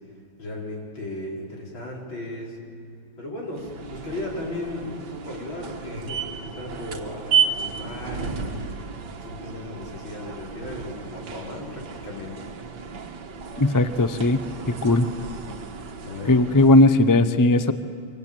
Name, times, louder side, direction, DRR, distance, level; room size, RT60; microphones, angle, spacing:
voice 1, 0.4-2.6 3.2-8.7 9.2-12.4 16.0-16.3, left 2 dB, 80° left, -2 dB, 5.6 m, -36 dB
sound 1, 3.5-17.0, right 6 dB, 60° right, 2.0 m, -32 dB
voice 2, 13.6-14.4 14.8-15.1 16.3-17.7, left 2 dB, 25° left, 10 dB, 0.4 m, -17 dB
25.5 x 24.0 x 9.0 m, 2.4 s
omnidirectional pair, 2.1 m